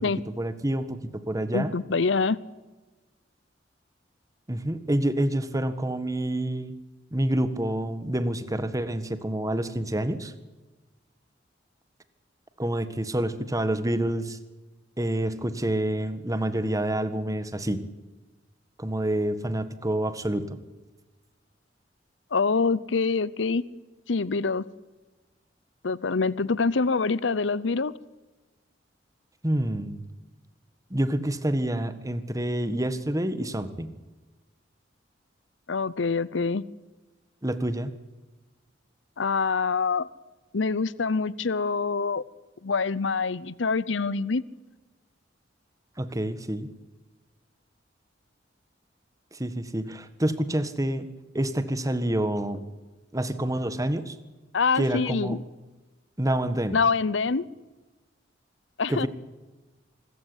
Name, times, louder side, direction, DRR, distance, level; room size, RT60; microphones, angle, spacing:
voice 1, 0.4-1.7 4.5-6.7 7.1-10.3 12.6-14.4 15.0-17.8 18.8-20.6 29.4-30.0 30.9-33.9 37.4-37.9 46.0-46.7 49.3-51.1 51.3-52.6 53.1-54.1 54.8-55.4 56.2-56.8 58.9-59.1, right 1 dB, 20° right, 11 dB, 1.6 m, -27 dB
voice 2, 1.5-2.4 22.3-23.6 24.1-24.6 25.8-27.9 35.7-36.6 39.2-40.1 40.5-42.2 42.6-44.4 54.5-55.4 56.7-57.4 58.8-59.1, left 4 dB, 75° left, 20 dB, 0.7 m, -25 dB
25.5 x 15.0 x 9.8 m, 1.2 s
head